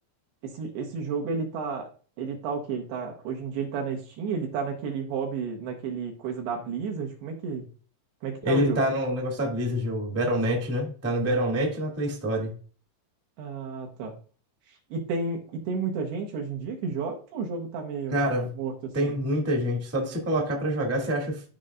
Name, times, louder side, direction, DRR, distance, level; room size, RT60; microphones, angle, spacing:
voice 1, 0.4-1.9 2.2-7.7 8.2-8.8 13.4-14.2 14.7-18.2 18.5-19.2, right 5 dB, 70° right, 2 dB, 3.0 m, -32 dB
voice 2, 8.4-12.5 18.1-18.5 18.9-21.4, equal, 5° right, -1 dB, 1.1 m, -26 dB
14.0 x 5.2 x 2.5 m, 0.39 s
omnidirectional pair, 5.1 m